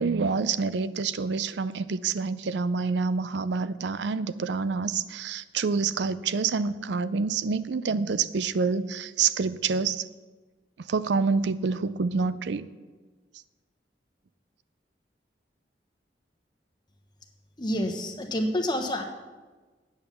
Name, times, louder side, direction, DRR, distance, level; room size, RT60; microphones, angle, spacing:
voice 1, 0.0-10.1 10.9-12.7, right 5 dB, 75° right, 15 dB, 0.5 m, -27 dB
voice 2, 17.6-19.0, left 1 dB, 25° left, 4 dB, 1.1 m, -28 dB
8.9 x 8.0 x 6.9 m, 1.3 s
head